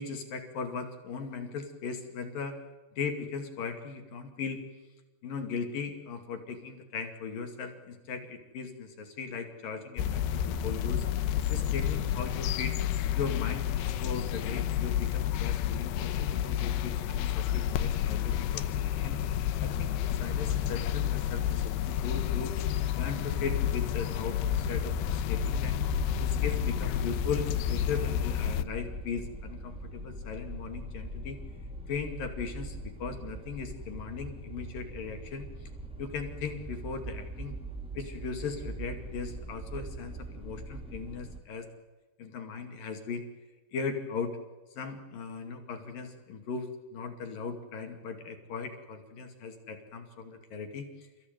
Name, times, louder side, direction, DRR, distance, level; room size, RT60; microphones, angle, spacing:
voice 1, 0.0-2.6 3.0-4.6 5.2-11.1 11.5-12.7 13.2-13.7 14.0-19.2 19.6-22.6 23.0-25.8 26.2-31.4 31.9-35.7 36.0-37.5 37.9-41.7 42.2-43.3 43.7-44.3 44.7-51.1, left 5 dB, 60° left, 5 dB, 3.9 m, -38 dB
sound 1, 10.0-28.6, left 10 dB, 85° left, 3.1 m, -30 dB
sound 2, 24.3-41.4, right 2 dB, 5° right, 1.0 m, -41 dB
29.5 x 16.0 x 9.3 m, 1.2 s
omnidirectional pair, 4.7 m